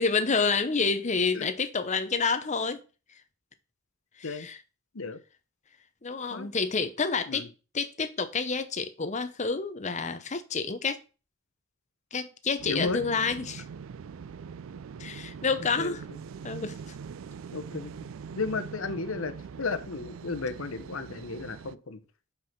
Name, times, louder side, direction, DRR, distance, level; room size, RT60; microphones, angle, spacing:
voice 1, 0.0-2.8 4.2-4.6 6.0-7.5 7.7-11.0 12.1-13.6 15.0-16.0 16.4-16.8, left 4 dB, 35° left, 0.8 m, -28 dB
sound 1, 12.6-21.7, right 6 dB, 75° right, 0.4 m, -42 dB
voice 2, 12.7-13.0 15.8-16.2 17.5-17.9 18.4-22.0, left 3 dB, 80° left, 0.9 m, -34 dB
5.6 x 5.6 x 6.0 m
head